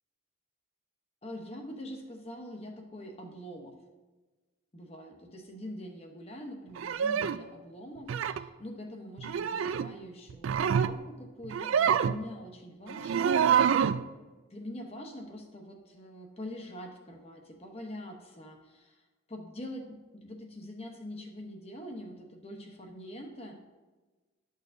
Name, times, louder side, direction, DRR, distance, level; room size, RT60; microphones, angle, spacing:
voice 1, 1.2-3.7 4.7-13.8 14.5-19.9 20.1-23.6, left 1 dB, 30° left, 3 dB, 0.9 m, -44 dB
sound 1, 6.8-7.4 8.1-8.4 9.2-9.9 10.3-11.0 11.4-12.2 12.9-14.0, right 7 dB, 70° right, 0.3 m, -27 dB
12.0 x 6.5 x 2.7 m, 1.2 s
head